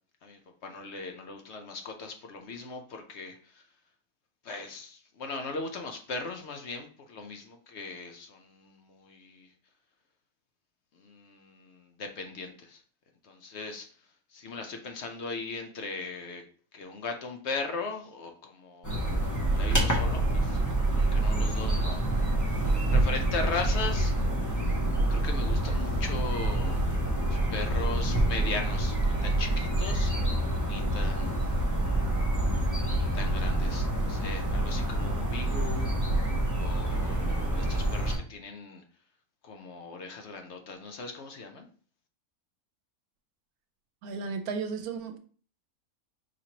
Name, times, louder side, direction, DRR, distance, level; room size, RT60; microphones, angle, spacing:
voice 1, 0.2-3.6 4.4-9.5 10.9-12.8 13.2-13.9 14.3-16.4 16.7-20.6 21.0-22.2 22.9-24.1 25.1-26.9 27.2-30.3 30.6-31.8 32.8-35.9 36.4-38.8 39.4-41.7, left 3 dB, 60° left, 4 dB, 0.8 m, -39 dB
sound 1, 18.8-38.2, right 1 dB, 15° left, 0.8 m, -27 dB
voice 2, 44.0-45.2, right 5 dB, 80° right, 7 dB, 1.1 m, -34 dB
5.0 x 2.9 x 2.8 m, 0.43 s
omnidirectional pair, 1.6 m